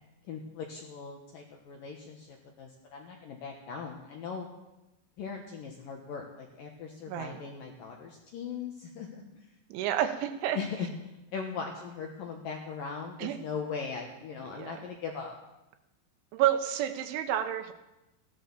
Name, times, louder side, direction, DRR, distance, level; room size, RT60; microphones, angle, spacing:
voice 1, 0.3-4.5 5.2-9.1 10.6-15.3, left 6 dB, 70° left, 1 dB, 2.2 m, -39 dB
voice 2, 7.1-7.4 9.7-10.6 13.2-13.4 14.4-14.8 16.3-17.7, right 11 dB, 80° right, 8 dB, 3.2 m, -30 dB
15.5 x 12.0 x 7.1 m, 0.96 s
omnidirectional pair, 5.6 m